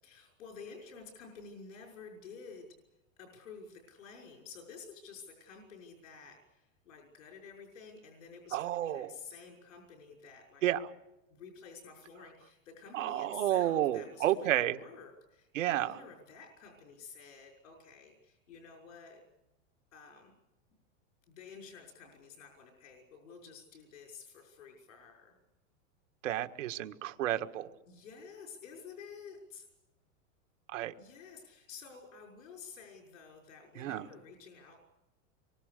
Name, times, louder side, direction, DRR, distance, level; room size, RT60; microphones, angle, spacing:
voice 1, 0.0-2.7 3.2-10.6 11.3-19.2 19.9-20.4 21.3-25.4 27.9-29.7 31.0-34.8, left 5 dB, 80° left, 1 dB, 6.1 m, -51 dB
voice 2, 8.5-9.2 10.6-10.9 12.9-14.8 15.5-16.0 26.2-27.7 30.7-30.9 33.8-34.1, right 13 dB, 70° right, 8 dB, 1.8 m, -31 dB
26.0 x 24.0 x 6.8 m, 0.97 s
supercardioid pair, 170°, 39 cm